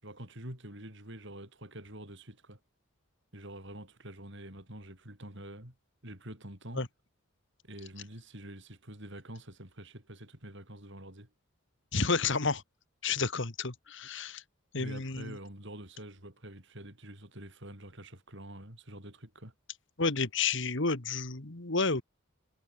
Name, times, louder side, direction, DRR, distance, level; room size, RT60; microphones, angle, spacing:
voice 1, 0.0-2.6 3.3-5.8 6.0-6.8 7.6-11.3 14.8-19.5, right 1 dB, 60° right, 7.7 m, -46 dB
voice 2, 11.9-12.6 13.0-14.4 14.7-15.4 20.0-22.0, left 4 dB, 60° left, 1.9 m, -30 dB
head